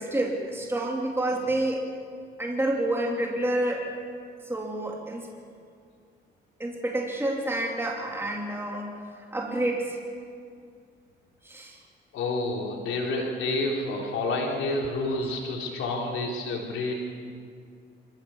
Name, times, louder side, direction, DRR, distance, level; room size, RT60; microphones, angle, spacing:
voice 1, 0.0-1.8 2.4-3.9 4.4-5.3 6.6-9.0 9.3-10.0 11.4-11.8 15.2-15.3, right 1 dB, 10° right, -1 dB, 3.1 m, -28 dB
voice 2, 12.1-16.9, left 2 dB, 85° left, 0 dB, 3.7 m, -29 dB
26.0 x 15.0 x 7.2 m, 2.2 s
cardioid pair, 90°, 20 cm